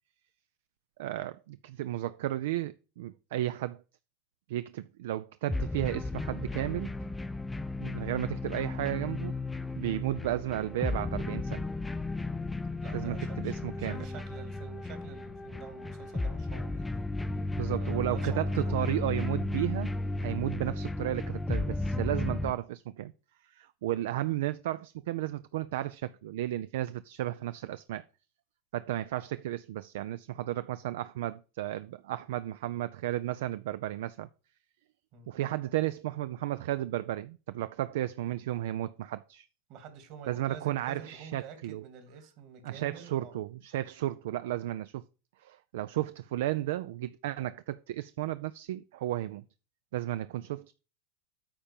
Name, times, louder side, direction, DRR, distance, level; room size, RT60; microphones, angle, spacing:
voice 1, 1.0-3.8 4.5-6.9 7.8-9.4 9.8-11.6 12.9-14.1 17.6-19.9 20.2-23.1 23.5-28.0 28.7-34.3 35.3-39.5 40.3-41.8 42.6-45.0 45.4-49.4 49.9-50.7, right 14 dB, 75° right, 0.4 m, -33 dB
sound 1, 5.5-22.5, left 2 dB, 10° left, 0.5 m, -34 dB
voice 2, 12.8-17.0 17.8-19.0 35.1-35.3 39.7-43.4, right 6 dB, 55° right, 2.5 m, -48 dB
8.8 x 3.8 x 7.1 m
hypercardioid pair, 105°, 0 cm